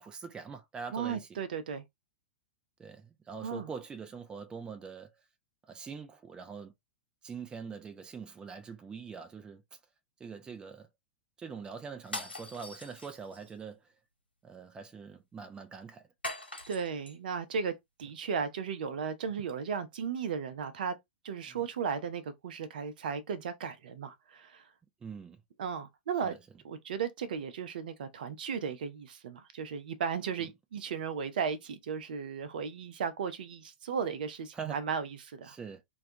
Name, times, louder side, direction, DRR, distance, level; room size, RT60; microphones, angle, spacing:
voice 1, 0.0-1.4 2.8-5.1 5.6-6.7 7.2-9.6 10.2-10.9 11.4-13.8 14.4-16.0 21.5-21.6 25.0-25.4 26.2-26.4 34.5-34.8 35.4-35.8, right 5 dB, 15° right, 0.4 m, -43 dB
voice 2, 0.9-1.8 3.4-3.7 16.7-17.7 18.0-20.9 21.2-24.6 25.6-26.3 26.6-35.5, right 6 dB, 60° right, 0.6 m, -35 dB
sound 1, 12.0-13.5 16.2-17.2, left 2 dB, 85° left, 0.9 m, -41 dB
2.3 x 2.2 x 2.7 m
figure-of-eight pair, 100°, 5 cm